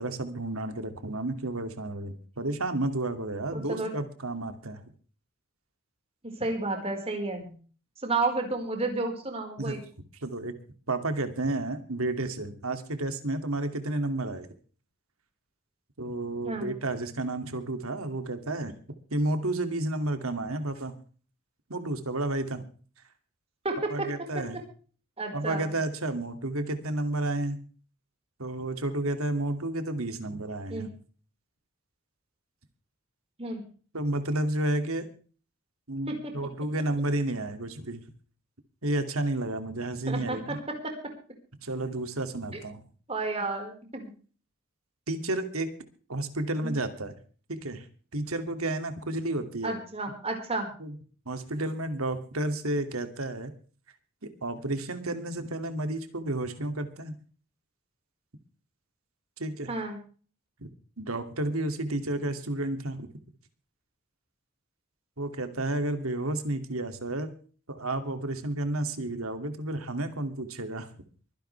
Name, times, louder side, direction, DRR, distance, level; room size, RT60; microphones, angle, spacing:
voice 1, 0.0-4.8 9.6-9.8 10.2-10.5 10.9-14.5 16.0-18.7 19.1-21.0 21.7-22.6 23.9-24.6 25.3-27.6 28.4-30.9 33.9-35.1 35.9-38.0 38.8-40.6 41.6-42.8 45.1-45.7 46.1-47.1 47.5-47.9 48.1-49.8 50.8-51.0 51.3-53.5 54.2-57.2 59.4-59.7 60.6-60.7 61.0-63.1 65.2-67.3 67.7-70.9, right 2 dB, 80° right, 8 dB, 2.5 m, -31 dB
voice 2, 3.5-3.9 6.4-7.5 8.0-9.8 16.4-16.7 23.6-24.1 25.2-25.7 30.7-30.9 33.4-33.6 36.1-36.3 40.1-40.9 43.1-44.1 46.6-46.7 49.6-50.7 59.7-60.0, right 3 dB, 30° right, 3 dB, 4.9 m, -31 dB
24.5 x 10.5 x 3.4 m, 0.40 s
head